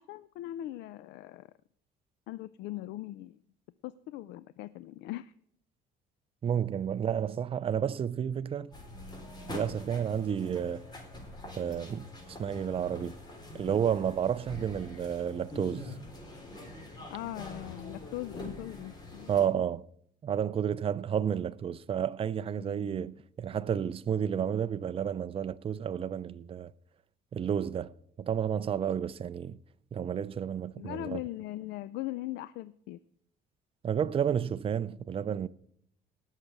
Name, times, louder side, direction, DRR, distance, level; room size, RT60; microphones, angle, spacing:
voice 1, 0.0-1.5 2.3-3.4 3.8-5.3 17.1-19.3 22.6-23.1 30.8-33.0, left 15 dB, 85° left, 0.5 m, -40 dB
voice 2, 6.4-8.7 9.5-10.8 11.6-12.1 12.4-13.2 13.5-15.8 19.3-19.8 20.2-26.7 27.3-27.9 28.2-29.6 29.9-31.2 33.8-35.5, right 8 dB, 35° right, 0.5 m, -31 dB
sound 1, 8.7-19.5, left 2 dB, 25° left, 4.2 m, -45 dB
18.5 x 6.6 x 6.0 m
cardioid pair, 110°, 17 cm